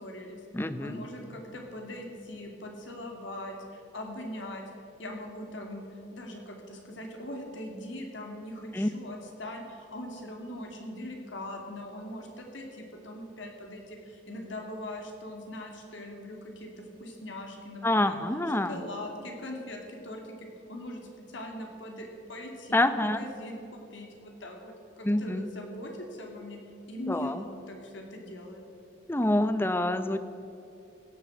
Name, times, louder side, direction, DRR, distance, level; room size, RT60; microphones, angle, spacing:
voice 1, 0.0-0.4 0.8-4.6 5.0-5.8 6.1-18.2 18.7-26.6 26.9-28.6, left 1 dB, 80° left, 2 dB, 2.5 m, -41 dB
voice 2, 0.5-1.0 8.7-8.9 17.8-18.8 22.7-23.3 25.0-25.5 27.1-27.4 29.1-30.2, left 1 dB, 10° left, 11 dB, 0.6 m, -27 dB
16.0 x 8.5 x 7.8 m, 2.9 s
head